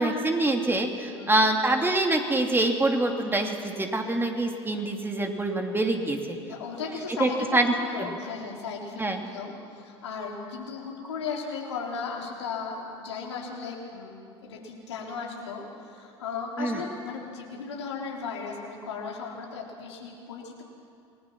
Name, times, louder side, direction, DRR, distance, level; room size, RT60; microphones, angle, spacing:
voice 1, 0.0-6.4 7.2-7.7 8.0-8.1 9.0-9.2 16.6-16.8, right 2 dB, 15° right, 3 dB, 2.7 m, -25 dB
voice 2, 1.1-1.5 6.5-20.6, left 5 dB, 80° left, -1 dB, 3.7 m, -36 dB
28.0 x 20.0 x 6.1 m, 2.5 s
hypercardioid pair, 70°, 14 cm